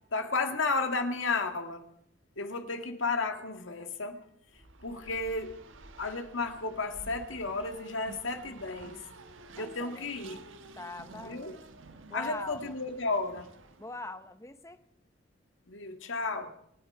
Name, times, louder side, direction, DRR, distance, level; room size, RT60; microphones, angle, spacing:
voice 1, 0.1-1.9 2.4-4.2 4.8-5.5 6.0-9.0 9.6-10.4 11.2-11.5 12.1-13.5 15.7-16.5, left 3 dB, 80° left, 6 dB, 1.9 m, -33 dB
Race car auto racing, 4.5-14.1, right 2 dB, 80° right, 1.3 m, -50 dB
voice 2, 9.6-10.1 10.8-11.6 12.1-12.7 13.8-14.8, left 2 dB, 15° left, 11 dB, 0.9 m, -42 dB
27.0 x 9.9 x 4.8 m, 0.73 s
head